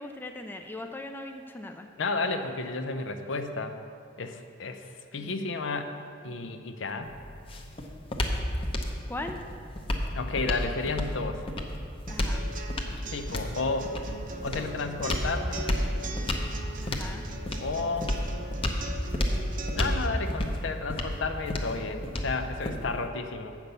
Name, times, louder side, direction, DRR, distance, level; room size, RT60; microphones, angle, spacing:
voice 1, 0.0-1.9 9.1-9.4 12.1-12.4 16.8-17.3, left 2 dB, 10° left, 4 dB, 0.4 m, -39 dB
voice 2, 2.0-3.8 4.2-4.8 5.1-5.9 6.2-7.1 10.1-11.5 13.1-13.9 14.4-15.7 17.6-18.1 19.7-23.6, left 3 dB, 75° left, 7 dB, 0.6 m, -32 dB
sound 1, 7.0-23.1, left 1 dB, 30° left, 0.8 m, -32 dB
sound 2, 12.1-20.1, right 3 dB, 45° right, 0.7 m, -41 dB
8.2 x 5.9 x 6.7 m, 2.4 s
head